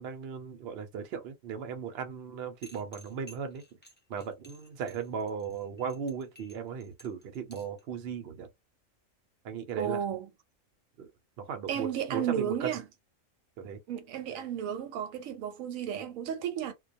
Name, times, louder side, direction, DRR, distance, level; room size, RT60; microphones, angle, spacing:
voice 1, 0.0-3.6 4.1-8.5 9.4-10.0 11.0-11.1 11.4-12.7 13.6-13.8, right 7 dB, 60° right, 0.8 m, -37 dB
sound 1, 2.6-7.8, left 1 dB, 15° left, 0.3 m, -55 dB
voice 2, 9.8-10.3 11.7-12.8 13.9-16.7, right 9 dB, 90° right, 1.0 m, -33 dB
2.2 x 2.2 x 2.6 m
omnidirectional pair, 1.4 m